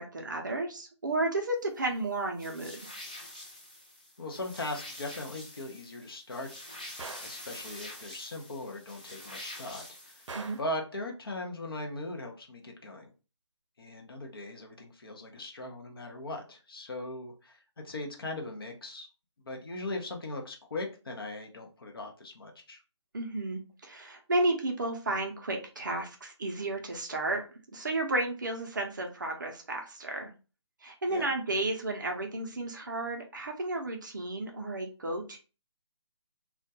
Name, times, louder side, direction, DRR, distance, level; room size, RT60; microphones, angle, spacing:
voice 1, 0.0-2.8 10.3-10.6 23.1-27.4 27.7-30.3 30.8-35.4, right 2 dB, 40° right, 2 dB, 0.5 m, -32 dB
sound 1, 2.4-10.6, left 1 dB, 15° left, 0.3 m, -46 dB
voice 2, 4.2-7.0 7.2-10.2 10.6-13.1 13.8-19.1 19.4-22.8 31.1-31.3, left 2 dB, 50° left, 2 dB, 0.6 m, -39 dB
Gunshot gunfire, 7.0-7.4 10.3-10.8, right 3 dB, 90° right, 0.5 m, -42 dB
2.3 x 2.1 x 2.7 m, 0.32 s
hypercardioid pair, 175°, 15 cm